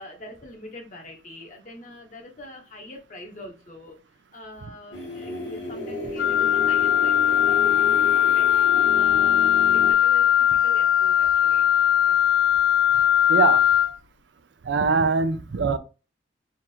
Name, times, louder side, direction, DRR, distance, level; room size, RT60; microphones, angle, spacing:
voice 1, 0.0-11.7 12.1-12.2, left 1 dB, 40° left, 1.0 m, -43 dB
sound 1, 4.9-9.9, left 1 dB, 65° left, 1.5 m, -33 dB
Wind instrument woodwind instrument, 6.2-14.0, left 11 dB, 85° left, 0.4 m, -19 dB
voice 2, 13.3-13.6 14.6-15.8, right 4 dB, 70° right, 0.5 m, -22 dB
3.6 x 2.5 x 4.4 m
head